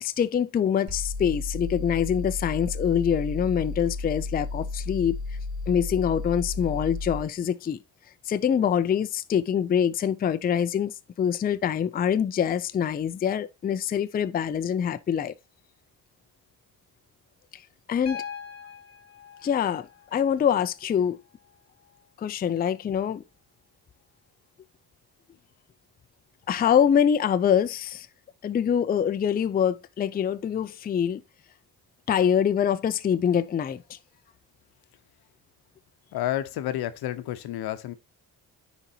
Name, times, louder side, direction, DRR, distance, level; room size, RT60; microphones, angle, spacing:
voice 1, 0.0-5.2 5.7-7.8 8.3-15.3 17.5-17.6 17.9-18.2 19.4-21.2 22.2-23.2 26.5-28.1 28.4-31.2 32.1-34.0, left 8 dB, 25° left, 0.4 m, -25 dB
sound 1, 0.9-7.3, left 3 dB, 40° right, 3.3 m, -33 dB
Piano, 18.1-22.1 23.6-23.7, left 7 dB, 40° left, 1.1 m, -43 dB
voice 2, 36.1-37.9, left 13 dB, 75° left, 0.8 m, -30 dB
9.9 x 4.0 x 2.7 m
cardioid pair, 80°, 38 cm